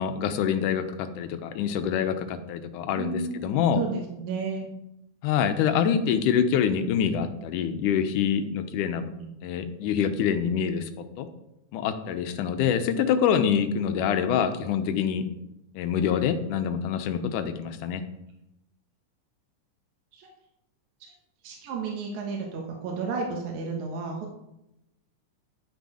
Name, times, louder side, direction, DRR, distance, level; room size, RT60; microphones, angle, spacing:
voice 1, 0.0-3.8 5.2-9.1 9.4-10.9 11.2-11.3 11.7-15.2 15.8-18.0, left 8 dB, 80° left, 9 dB, 2.3 m, -25 dB
voice 2, 2.9-3.4 3.8-4.7 9.1-9.3 20.1-20.3 21.4-24.3, right 4 dB, 70° right, 0 dB, 2.6 m, -32 dB
11.0 x 6.6 x 4.9 m, 0.86 s
omnidirectional pair, 3.6 m